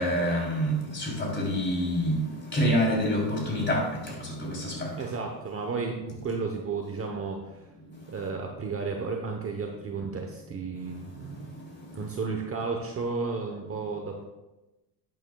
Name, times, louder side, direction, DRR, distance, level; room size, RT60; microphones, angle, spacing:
voice 1, 0.0-5.1 11.5-11.6, equal, 20° left, -2 dB, 3.4 m, -27 dB
voice 2, 5.0-7.6 8.1-11.3 11.9-14.2, right 4 dB, 25° right, 2 dB, 1.0 m, -33 dB
12.0 x 8.9 x 2.3 m, 1.0 s
supercardioid pair, 115°, 49 cm